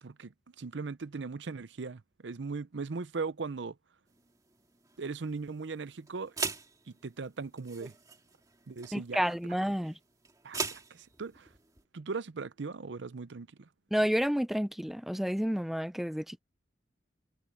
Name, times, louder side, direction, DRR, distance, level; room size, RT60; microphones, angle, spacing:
voice 1, 0.0-3.8 5.0-6.4 7.0-7.9 8.7-9.3 10.4-11.5 11.9-13.7, right 4 dB, 75° right, 0.6 m, -39 dB
sound 1, 4.1-11.8, right 4 dB, 20° right, 2.1 m, -42 dB
voice 2, 8.9-10.0 13.9-16.4, equal, ahead, 0.4 m, -30 dB
head